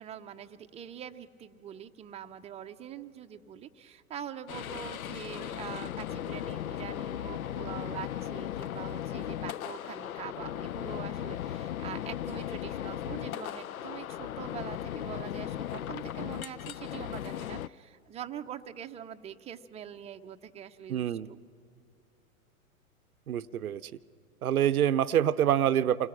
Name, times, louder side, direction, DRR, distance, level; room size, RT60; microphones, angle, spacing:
voice 1, 0.0-21.4, right 9 dB, 15° right, 6 dB, 0.6 m, -44 dB
sound 1, 4.5-17.7, left 11 dB, 75° left, 0.6 m, -37 dB
voice 2, 20.9-21.3 23.3-23.9 24.4-26.1, right 10 dB, 85° right, 14 dB, 0.6 m, -26 dB
28.5 x 21.0 x 6.0 m, 2.3 s
figure-of-eight pair, 100°, 42 cm